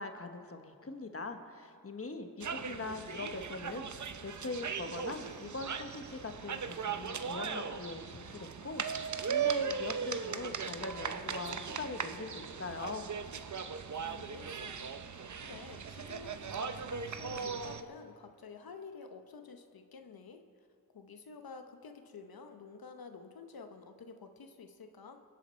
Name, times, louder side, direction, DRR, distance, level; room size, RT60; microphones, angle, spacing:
voice 1, 0.0-13.1, left 3 dB, 40° left, 6 dB, 1.1 m, -42 dB
sound 1, 2.4-17.8, right 6 dB, 55° right, 0.7 m, -38 dB
voice 2, 13.9-14.9 15.4-20.4 20.9-25.2, left 4 dB, 75° left, 6 dB, 0.9 m, -50 dB
22.0 x 8.3 x 4.4 m, 2.3 s
wide cardioid pair, 60°, 36 cm